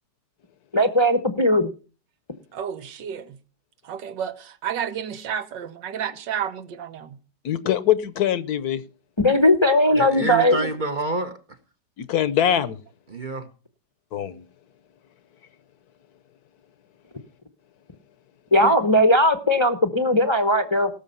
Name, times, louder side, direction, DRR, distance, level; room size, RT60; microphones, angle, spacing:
voice 1, 0.7-1.7 9.2-10.7 18.5-20.9, left 1 dB, 25° left, 0.6 m, -18 dB
voice 2, 2.5-3.4 3.8-7.2 18.6-19.0, right 8 dB, 85° right, 1.7 m, -31 dB
voice 3, 7.4-8.8 12.0-12.8 14.1-14.4, left 10 dB, 65° left, 1.2 m, -23 dB
voice 4, 9.9-11.4 13.1-13.5 20.1-20.2, right 2 dB, 40° right, 0.7 m, -28 dB
18.0 x 6.8 x 5.4 m
omnidirectional pair, 1.9 m